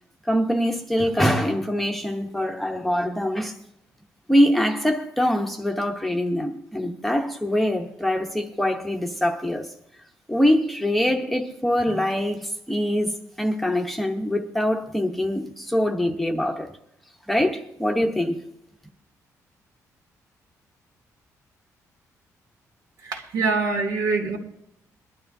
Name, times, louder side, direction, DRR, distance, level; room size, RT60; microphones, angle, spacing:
voice 1, 0.2-3.6 4.3-9.7 10.3-16.7 17.3-18.4, equal, ahead, 0.9 m, -23 dB
voice 2, 23.0-24.4, right 4 dB, 75° right, 2.5 m, -24 dB
22.5 x 12.0 x 2.7 m
cardioid pair, 170°, 6 cm